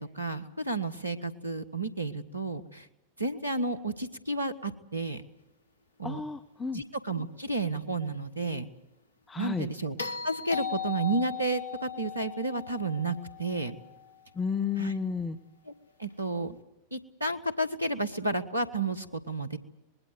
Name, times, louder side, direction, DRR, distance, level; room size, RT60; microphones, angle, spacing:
voice 1, 0.0-2.9 3.2-5.2 6.0-6.2 6.7-8.6 9.4-10.0 10.2-13.8 14.8-14.9 16.0-16.6 16.9-19.6, right 2 dB, 85° right, 12 dB, 1.5 m, -31 dB
voice 2, 6.0-6.8 9.3-9.7 14.3-15.4, left 6 dB, 15° left, 10 dB, 1.1 m, -32 dB
sound 1, 10.0-14.3 16.5-16.6, left 7 dB, 75° left, 1.1 m, -38 dB
25.5 x 21.0 x 8.0 m, 0.91 s
figure-of-eight pair, 90°, 0 cm